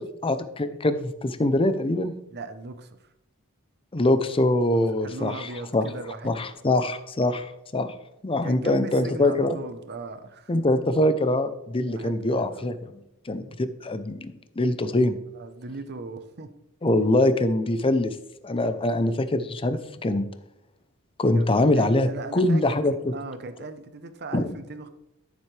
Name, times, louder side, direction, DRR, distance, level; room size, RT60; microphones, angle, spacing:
voice 1, 0.2-2.1 3.9-5.9 6.2-7.9 8.2-9.6 10.5-13.0 13.3-15.2 16.8-18.2 18.4-20.3 21.2-23.1 24.3-24.5, left 1 dB, 25° left, 11 dB, 0.6 m, -23 dB
voice 2, 2.3-3.0 4.7-6.5 8.4-10.5 11.8-12.7 15.3-16.5 21.3-22.8 23.1-24.9, right 3 dB, 50° right, 10 dB, 0.9 m, -38 dB
12.5 x 7.3 x 3.3 m, 0.85 s
head